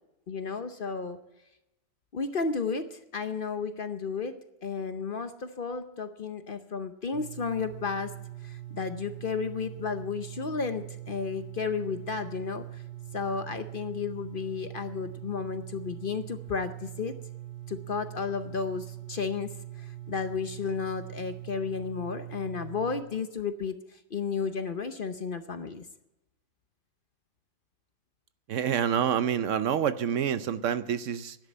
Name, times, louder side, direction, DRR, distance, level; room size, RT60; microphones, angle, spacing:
voice 1, 0.3-1.2 2.1-8.1 8.4-12.8 13.1-17.2 17.7-25.9, left 5 dB, 45° left, 9 dB, 0.8 m, -33 dB
sound 1, 7.1-23.0, right 14 dB, 40° right, 1.2 m, -42 dB
voice 2, 28.5-31.4, right 8 dB, 70° right, 13 dB, 1.0 m, -27 dB
11.5 x 10.0 x 8.6 m, 0.93 s
omnidirectional pair, 1.4 m